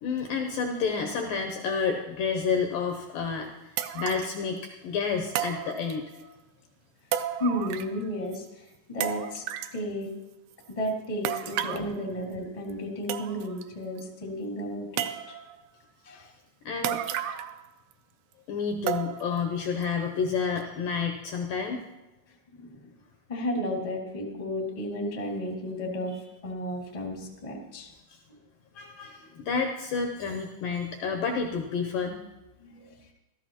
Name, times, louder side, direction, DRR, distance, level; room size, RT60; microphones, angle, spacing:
voice 1, 0.0-3.5 3.9-6.4 16.7-17.0 18.5-21.8 26.1-26.2 28.8-32.2, left 5 dB, 85° left, 3 dB, 2.0 m, -30 dB
sound 1, 3.0-3.1 3.8-4.4 5.3-6.2 7.1-8.0 8.3-8.4 9.0-9.8 11.2-11.9 12.7-12.8 13.1-13.6 14.0-14.1 15.0-15.6 16.8-17.6 17.9-18.0 18.9-19.4 19.8-19.9 20.6-20.7, right 11 dB, 85° right, 2.1 m, -32 dB
voice 2, 7.4-9.4 9.7-10.1 10.7-15.3 16.0-16.3 17.3-17.4 22.5-22.9 23.3-26.2 26.4-27.9 28.3-28.4 29.3-29.4 32.6-33.0, equal, 70° left, -1 dB, 0.3 m, -33 dB
15.5 x 13.5 x 2.9 m, 1.0 s
omnidirectional pair, 4.9 m